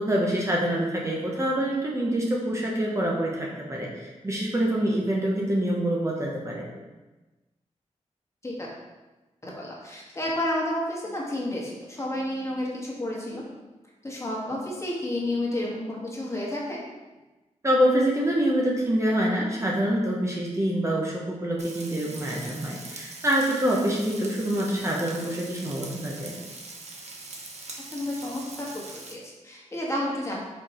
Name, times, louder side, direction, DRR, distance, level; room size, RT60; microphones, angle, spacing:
voice 1, 0.0-6.7 17.6-26.3, right 1 dB, 25° right, -3 dB, 1.1 m, -26 dB
voice 2, 9.4-13.4 14.0-16.8 27.9-30.4, left 1 dB, 25° left, -4 dB, 1.7 m, -31 dB
Frying (food), 21.6-29.1, right 3 dB, 65° right, 1.0 m, -42 dB
5.0 x 4.7 x 4.4 m, 1.1 s
wide cardioid pair, 80°, 12 cm